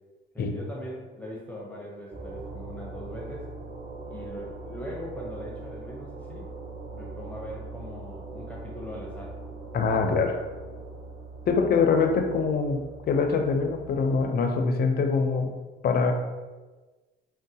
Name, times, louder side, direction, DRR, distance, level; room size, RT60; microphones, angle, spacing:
voice 1, 0.3-3.5 4.1-6.5 6.9-9.4, equal, 5° left, -3 dB, 0.6 m, -40 dB
sound 1, 2.1-14.1, right 3 dB, 40° right, 0.7 m, -41 dB
voice 2, 9.7-10.4 11.5-12.8 13.1-15.5 15.8-16.1, left 4 dB, 50° left, 5 dB, 0.4 m, -24 dB
3.8 x 2.1 x 2.7 m, 1.3 s
cardioid pair, 90°, 20 cm